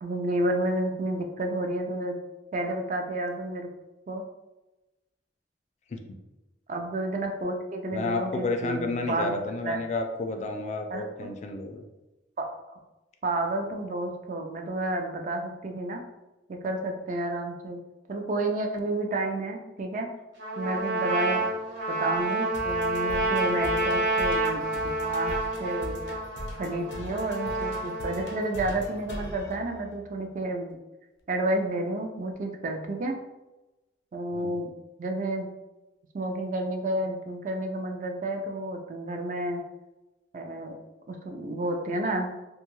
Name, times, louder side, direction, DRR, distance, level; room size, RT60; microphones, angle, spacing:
voice 1, 0.0-2.2 2.5-3.7 4.1-4.2 6.7-9.8 10.9-11.1 12.4-12.5 13.2-16.0 16.5-17.8 18.1-20.1 20.6-21.6 21.9-25.3 25.6-26.0 26.6-30.8 31.3-33.1 34.1-34.7 35.0-35.5 36.1-39.6 40.3-40.8 41.1-42.3, right 1 dB, 45° right, 3 dB, 0.4 m, -30 dB
voice 2, 7.9-11.8 34.3-34.5, left 3 dB, 40° left, 4 dB, 0.3 m, -31 dB
Trumpet, 20.4-28.5, right 2 dB, 75° right, 0.8 m, -29 dB
sound 1, 21.8-30.3, left 1 dB, 85° left, 0.6 m, -41 dB
2.6 x 2.3 x 3.0 m, 1.0 s
head